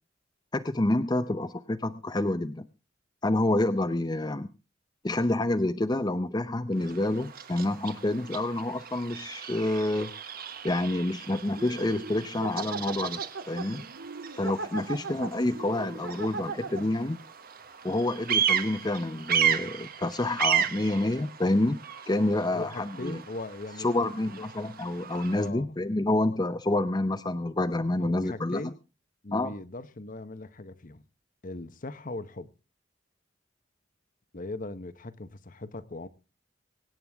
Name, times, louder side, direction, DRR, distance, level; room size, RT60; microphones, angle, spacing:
voice 1, 0.5-2.7 3.2-4.5 5.0-10.1 10.6-13.2 13.5-13.9 14.4-17.2 17.8-21.8 22.1-23.2 23.8-28.6 29.3-29.5, left 1 dB, 20° left, 0.7 m, -28 dB
Bird vocalization bird call bird song, 6.7-25.5, right 8 dB, 50° right, 1.2 m, -34 dB
sound 1, 7.3-7.6 10.7-10.8 11.3-17.0 17.6-17.7 18.0-18.1, right 4 dB, 80° right, 1.8 m, -38 dB
voice 2, 22.5-24.5 25.4-25.8 28.0-28.8 29.2-31.0 31.4-32.5 34.3-36.1, left 2 dB, 45° left, 1.0 m, -39 dB
24.5 x 9.4 x 3.5 m
head